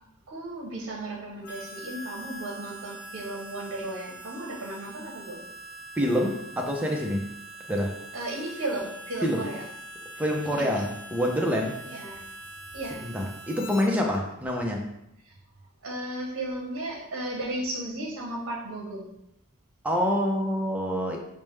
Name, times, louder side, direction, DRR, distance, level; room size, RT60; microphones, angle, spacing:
voice 1, 0.3-5.4 8.1-9.6 10.5-10.7 11.8-12.2 12.7-13.0 15.3-15.4 15.8-19.1, right 1 dB, 65° right, -1 dB, 0.8 m, -35 dB
Harmonica, 1.4-13.9, right 1 dB, 45° left, 1.1 m, -43 dB
voice 2, 6.0-7.3 7.7-7.9 9.2-9.5 10.2-11.8 13.0-14.9 19.8-21.2, equal, 5° right, 0 dB, 0.5 m, -26 dB
5.1 x 2.1 x 3.2 m, 0.83 s
head